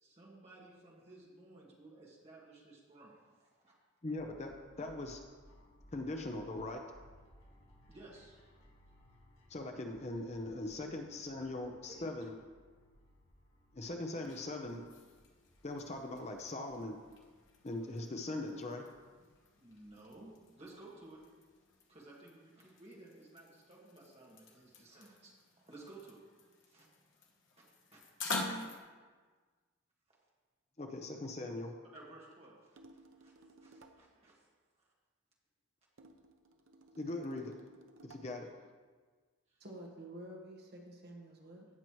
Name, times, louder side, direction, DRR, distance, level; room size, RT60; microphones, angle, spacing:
voice 1, 0.0-3.7 7.9-8.4 11.9-12.1 19.6-21.2 21.9-25.3 25.7-26.2 26.7-26.9 27.6-27.7 27.9-28.0 31.9-34.5 38.2-38.4 39.5-39.6, right 2 dB, 30° right, -4 dB, 2.0 m, -56 dB
voice 2, 4.0-5.2 5.9-6.8 9.5-12.3 13.7-14.8 15.6-17.0 17.6-18.8 30.8-31.8 37.0-37.5 38.0-38.5, left 2 dB, 30° left, 3 dB, 0.7 m, -40 dB
sound 1, 4.2-21.7, equal, 80° left, 1.8 m, -65 dB
sound 2, 13.9-28.8, left 3 dB, 60° left, 1.2 m, -48 dB
sound 3, 32.8-34.1 36.0-38.4, right 2 dB, 70° right, 0.7 m, -59 dB
voice 3, 39.6-41.7, right 1 dB, 50° right, 0 dB, 1.2 m, -49 dB
17.0 x 5.9 x 3.1 m, 1.4 s
head